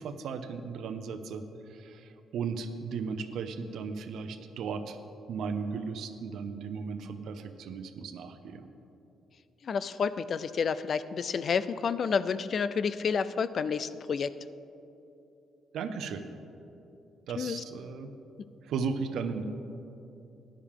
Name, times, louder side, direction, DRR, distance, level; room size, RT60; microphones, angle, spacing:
voice 1, 0.0-1.4 1.7-5.0 5.3-8.6 15.7-16.3 17.3-18.1 18.6-19.4, right 5 dB, 75° right, 9 dB, 0.7 m, -36 dB
voice 2, 9.6-14.3 17.4-17.6, left 6 dB, 50° left, 14 dB, 0.4 m, -30 dB
13.5 x 10.0 x 3.7 m, 2.9 s
cardioid pair, 90°, 0 cm